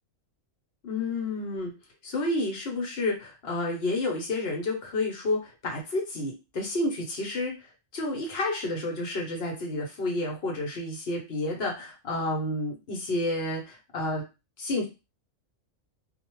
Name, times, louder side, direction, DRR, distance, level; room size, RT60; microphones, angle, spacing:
voice 1, 0.8-1.7 2.0-7.6 7.9-14.2 14.6-14.9, left 2 dB, 55° left, 0 dB, 1.0 m, -30 dB
2.4 x 2.2 x 3.0 m, 0.27 s
omnidirectional pair, 1.4 m